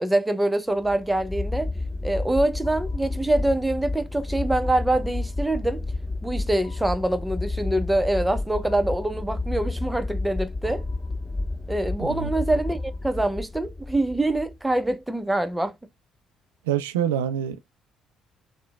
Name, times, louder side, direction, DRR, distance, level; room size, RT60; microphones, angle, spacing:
voice 1, 0.0-1.7 2.0-5.8 6.2-10.8 11.7-15.8, right 1 dB, 10° right, 0.5 m, -25 dB
sound 1, 0.8-14.9, left 2 dB, 20° left, 1.5 m, -31 dB
voice 2, 12.0-12.3 16.6-17.7, right 9 dB, 85° right, 0.3 m, -26 dB
3.1 x 2.1 x 2.3 m
hypercardioid pair, 55°, 0 cm